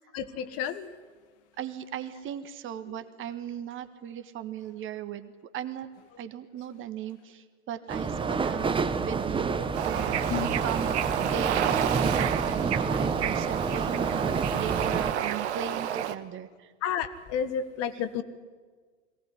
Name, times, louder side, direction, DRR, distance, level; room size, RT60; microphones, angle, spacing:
voice 1, 0.1-0.9 2.9-3.0 9.6-9.7 10.3-10.5 16.8-18.2, left 8 dB, 40° left, 12 dB, 1.7 m, -31 dB
voice 2, 1.6-5.9 6.2-10.2 10.6-16.7, right 9 dB, 35° right, 12 dB, 1.6 m, -37 dB
sound 1, 7.9-15.1, right 4 dB, 15° right, 1.3 m, -29 dB
Bird / Ocean, 9.7-16.2, right 10 dB, 65° right, 1.4 m, -30 dB
22.5 x 18.0 x 9.8 m, 1.5 s
hypercardioid pair, 100°, 36 cm